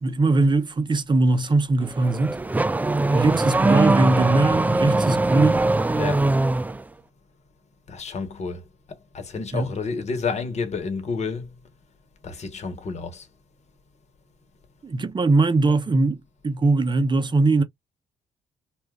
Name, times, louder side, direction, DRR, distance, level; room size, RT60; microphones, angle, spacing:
voice 1, 0.0-2.4 3.1-5.6 9.5-9.7 14.8-16.2 16.4-17.6, right 3 dB, 30° right, 0.8 m, -20 dB
Car / Accelerating revving vroom, 1.8-6.8, right 2 dB, 10° right, 0.3 m, -21 dB
voice 2, 5.9-6.3 7.9-8.6 9.1-11.5 12.2-13.3, left 5 dB, 50° left, 1.2 m, -30 dB
2.4 x 2.4 x 3.5 m
supercardioid pair, 60°, 15 cm